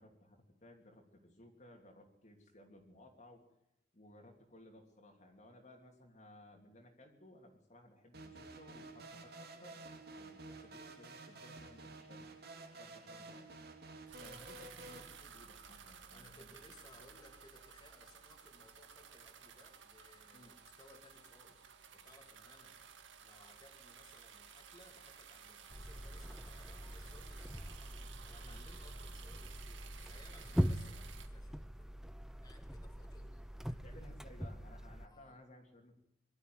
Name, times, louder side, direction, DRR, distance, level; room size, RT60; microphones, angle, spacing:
voice 1, 0.0-3.4 3.9-9.8 10.2-12.3 12.7-13.5 14.2-16.5 20.3-20.5 28.4-28.6 33.8-35.9, left 1 dB, 40° left, 1 dB, 3.0 m, -59 dB
sound 1, 8.1-15.0, right 2 dB, 55° right, 2.9 m, -51 dB
sound 2, 14.1-31.3, right 7 dB, 75° right, 2.2 m, -56 dB
voice 2, 16.1-21.7 21.9-22.8 23.2-27.7 28.2-32.0 32.4-34.1 35.0-35.4, left 2 dB, 20° left, 1 dB, 3.1 m, -63 dB
sound 3, 25.7-35.1, equal, 5° right, 0.7 m, -42 dB
22.5 x 13.0 x 9.5 m, 0.85 s
head